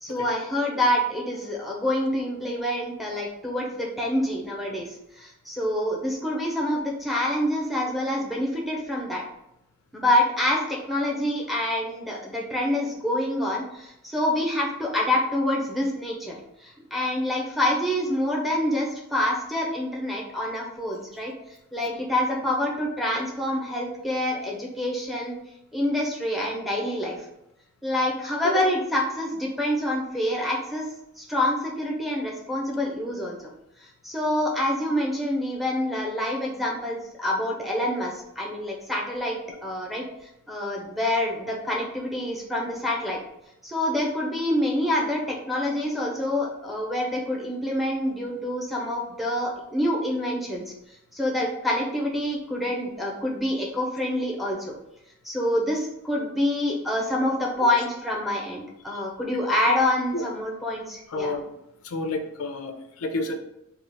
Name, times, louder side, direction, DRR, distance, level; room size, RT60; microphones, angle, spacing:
voice 1, 0.0-9.2 9.9-16.4 16.6-21.3 21.7-25.4 25.7-27.2 27.8-30.9 31.2-33.4 34.0-40.0 40.5-43.2 43.6-50.6 51.1-54.7 55.2-61.3, left 1 dB, ahead, -3 dB, 0.6 m, -26 dB
voice 2, 61.1-61.5 61.8-63.4, left 2 dB, 80° left, 5 dB, 0.5 m, -30 dB
3.0 x 2.4 x 3.9 m, 0.83 s
head